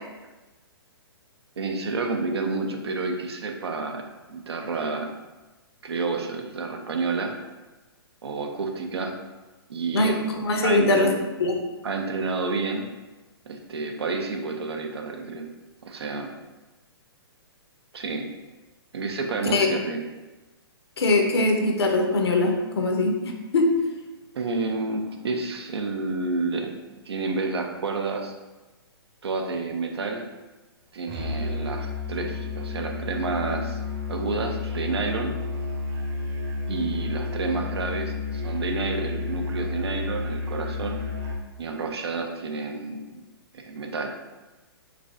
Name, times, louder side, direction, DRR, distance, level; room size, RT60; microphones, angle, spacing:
voice 1, 1.6-4.0 4.3-5.1 5.8-7.3 8.2-9.1 9.7-10.2 10.6-11.1 11.8-12.9 13.5-15.4 15.8-16.3 17.9-18.3 18.9-20.0 24.3-26.7 27.0-28.3 29.2-30.2 30.9-33.8 34.1-35.4 36.7-41.0 41.6-43.2 43.5-44.1, right 3 dB, 75° right, 4 dB, 0.7 m, -29 dB
voice 2, 9.9-11.1 11.4-11.5 19.5-19.7 21.0-23.7, left 2 dB, 75° left, 3 dB, 0.8 m, -22 dB
Musical instrument, 31.1-41.5, left 4 dB, 40° right, 0.9 m, -31 dB
4.9 x 3.3 x 2.5 m, 1.1 s
hypercardioid pair, 125°, 14 cm